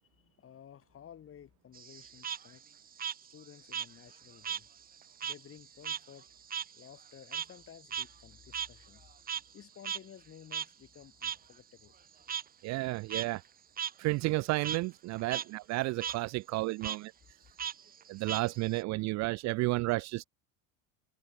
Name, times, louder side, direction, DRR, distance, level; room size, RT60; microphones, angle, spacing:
voice 1, 0.2-2.6 3.3-4.7 5.2-6.3 6.7-9.1 9.5-12.1, left 9 dB, 30° left, 3.3 m, -54 dB
Frog, 1.7-4.7 5.0-9.6 9.8-10.0 10.5-10.7 11.2-11.4 12.3-12.4 12.9-13.3 13.8-13.9 14.3-14.8 15.2-15.4 15.7-16.2 16.8-17.0 17.6-18.8, right 8 dB, 20° right, 1.0 m, -37 dB
voice 2, 12.6-13.4 14.0-17.1 18.1-20.2, right 21 dB, 40° right, 0.5 m, -32 dB
supercardioid pair, 105°, 42 cm